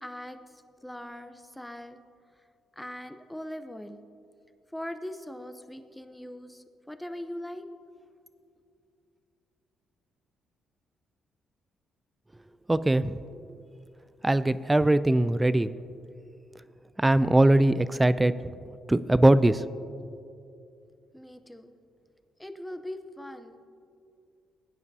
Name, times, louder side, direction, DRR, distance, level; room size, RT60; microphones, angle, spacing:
voice 1, 0.0-2.0 2.4-2.5 2.8-4.0 4.7-7.7 21.1-21.7 22.4-23.7, left 1 dB, 5° left, 9 dB, 0.7 m, -41 dB
voice 2, 12.7-13.2 14.2-15.8 17.0-18.3 18.9-19.6, right 1 dB, 15° right, 15 dB, 0.3 m, -21 dB
17.5 x 9.6 x 2.7 m, 2.5 s
cardioid pair, 90°, 0 cm